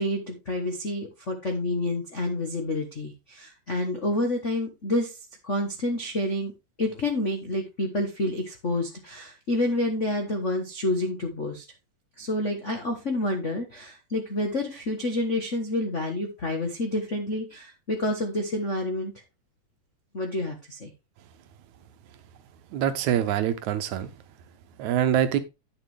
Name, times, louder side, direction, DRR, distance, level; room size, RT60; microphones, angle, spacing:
voice 1, 0.0-5.2 5.4-6.5 6.8-11.6 12.2-19.1 20.1-20.9, left 1 dB, 75° left, 0.6 m, -28 dB
voice 2, 22.7-24.1 24.8-25.4, right 10 dB, 75° right, 2.0 m, -24 dB
9.9 x 6.8 x 3.4 m
omnidirectional pair, 3.7 m